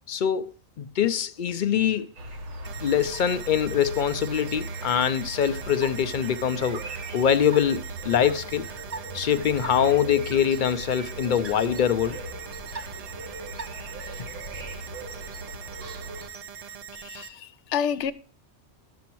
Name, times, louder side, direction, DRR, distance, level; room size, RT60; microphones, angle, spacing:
voice 1, 0.1-2.1 2.8-6.8 7.1-8.7 9.1-12.2, left 8 dB, 60° left, 0.5 m, -24 dB
sound 1, 1.8-16.8, right 4 dB, 40° right, 0.9 m, -47 dB
sound 2, 2.2-16.3, right 2 dB, 85° right, 1.4 m, -39 dB
sound 3, 2.6-17.3, right 8 dB, 60° right, 0.4 m, -42 dB
voice 2, 16.9-18.1, left 8 dB, 85° left, 0.9 m, -29 dB
11.5 x 7.0 x 3.0 m
omnidirectional pair, 1.2 m